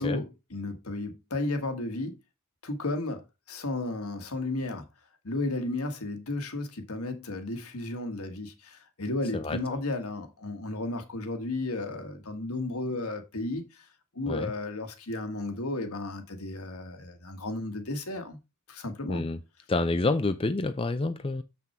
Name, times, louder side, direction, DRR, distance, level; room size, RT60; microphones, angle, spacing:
voice 1, 0.0-2.1 2.6-4.8 5.2-13.9 14.1-18.4 18.7-19.2, left 2 dB, 70° left, 1.6 m, -33 dB
voice 2, 19.1-19.4 19.7-21.4, left 2 dB, 25° left, 0.5 m, -28 dB
7.1 x 6.0 x 4.4 m
head